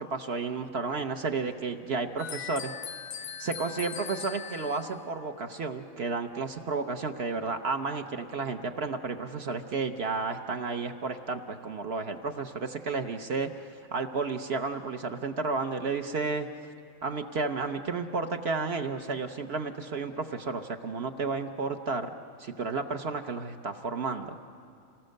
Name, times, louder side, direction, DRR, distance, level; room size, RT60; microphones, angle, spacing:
voice 1, 0.0-2.7 3.4-16.5 17.0-22.1 22.4-24.4, right 4 dB, 50° right, 6 dB, 0.9 m, -32 dB
sound 1, 2.2-5.0, left 8 dB, 50° left, 0.7 m, -40 dB
26.0 x 19.0 x 6.5 m, 2.4 s
omnidirectional pair, 1.5 m